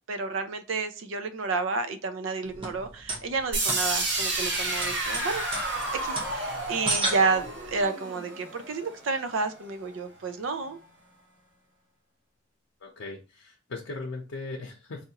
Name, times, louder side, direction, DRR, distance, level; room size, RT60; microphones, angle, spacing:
voice 1, 0.1-5.4 6.0-10.8, right 4 dB, 75° right, 9 dB, 0.5 m, -30 dB
sound 1, 2.4-7.8, right 2 dB, 30° right, 0.8 m, -34 dB
sound 2, 3.5-9.5, right 2 dB, 60° right, 1.3 m, -31 dB
voice 2, 12.8-15.0, left 3 dB, 90° left, 0 dB, 0.7 m, -38 dB
4.1 x 2.4 x 2.8 m, 0.33 s
head